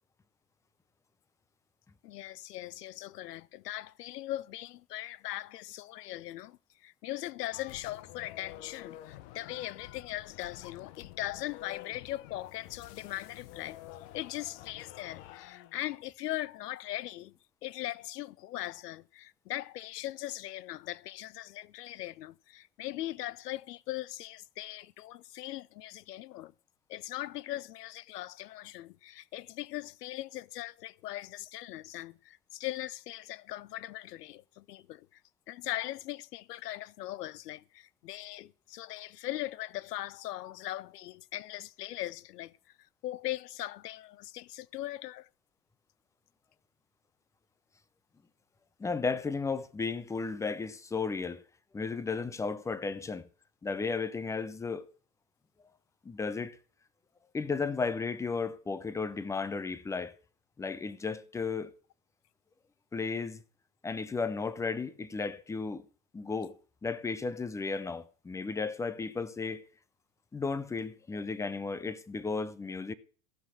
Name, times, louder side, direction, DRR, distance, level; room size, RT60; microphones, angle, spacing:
voice 1, 2.0-13.8 14.1-17.3 17.6-26.5 26.9-35.2 35.5-45.3, left 15 dB, 80° left, 0.5 m, -40 dB
sound 1, 7.5-15.8, left 14 dB, 50° left, 1.1 m, -49 dB
voice 2, 48.8-51.4 51.7-53.3 53.6-54.9 56.0-56.6 57.3-60.1 60.6-61.7 62.9-63.4 63.8-65.8 66.1-66.6 66.8-69.6 70.3-72.9, left 4 dB, 5° left, 0.5 m, -34 dB
15.5 x 5.8 x 6.2 m
hypercardioid pair, 105°, 48 cm